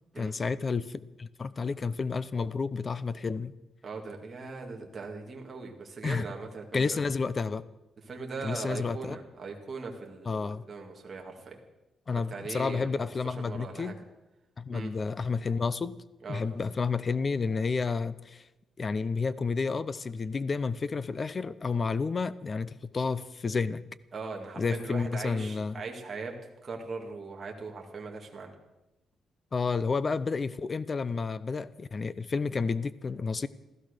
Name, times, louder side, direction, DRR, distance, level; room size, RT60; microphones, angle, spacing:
voice 1, 0.2-3.5 6.0-6.3 6.7-7.6 8.4-9.2 10.3-10.6 12.1-13.9 14.6-16.0 16.3-18.4 18.8-23.8 24.6-25.8 29.5-33.5, left 4 dB, 25° left, 17 dB, 0.5 m, -30 dB
voice 2, 3.8-7.0 8.1-11.6 12.1-13.1 13.4-13.9 14.7-14.9 16.2-16.4 24.1-26.3 26.6-28.5, right 4 dB, 25° right, 1 dB, 2.1 m, -40 dB
16.0 x 13.5 x 6.7 m, 1.0 s
wide cardioid pair, 175°, 0 cm